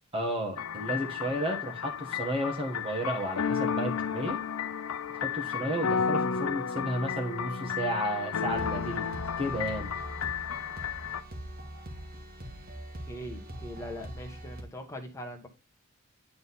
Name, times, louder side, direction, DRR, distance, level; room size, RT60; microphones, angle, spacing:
voice 1, 0.1-4.4 5.1-9.1 9.4-9.9, equal, 25° right, 1.5 m, -32 dB
sound 1, 0.6-11.2, left 6 dB, 80° left, 0.5 m, -32 dB
sound 2, 8.5-14.6, right 1 dB, 45° right, 1.7 m, -42 dB
voice 2, 13.1-15.5, equal, 15° left, 1.4 m, -41 dB
9.4 x 3.8 x 4.1 m
head